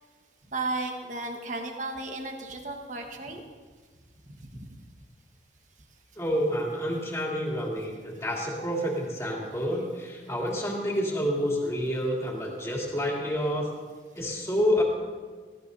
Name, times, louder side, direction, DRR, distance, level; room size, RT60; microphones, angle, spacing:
voice 1, 0.5-3.4, right 2 dB, 45° right, 3 dB, 1.5 m, -34 dB
voice 2, 6.2-13.7 14.1-14.8, equal, 15° left, -3 dB, 3.0 m, -28 dB
20.0 x 16.5 x 2.8 m, 1.5 s
head